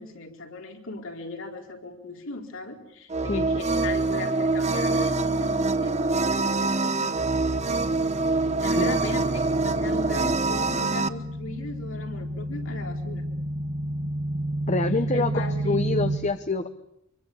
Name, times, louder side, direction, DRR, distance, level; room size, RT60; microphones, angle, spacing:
voice 1, 0.0-7.8 8.4-13.2 15.1-15.8, left 2 dB, 65° left, 3 dB, 4.3 m, -38 dB
sound 1, 3.1-11.1, right 3 dB, 35° right, 1.0 m, -25 dB
sound 2, 6.8-16.2, right 1 dB, 85° right, 5.7 m, -32 dB
voice 2, 14.7-16.7, left 3 dB, 35° left, 9 dB, 1.1 m, -26 dB
26.0 x 24.0 x 7.1 m, 0.77 s
head